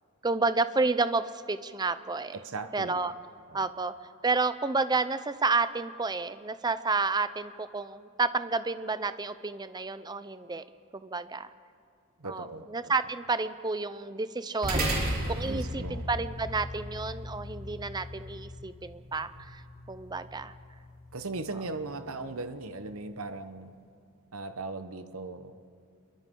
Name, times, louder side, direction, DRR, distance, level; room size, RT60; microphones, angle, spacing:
voice 1, 0.2-2.4 2.7-3.1 3.5-3.9 4.2-10.6 10.9-11.5 12.2-19.6 19.9-20.5, right 3 dB, 20° right, 13 dB, 0.6 m, -30 dB
voice 2, 2.3-3.0 3.5-3.7 12.2-12.7 15.4-16.0 21.1-23.7 24.3-25.6, right 3 dB, 70° right, 9 dB, 1.1 m, -38 dB
sound 1, 14.6-23.3, right 1 dB, 45° right, 3.9 m, -37 dB
29.5 x 23.0 x 3.8 m, 2.3 s
head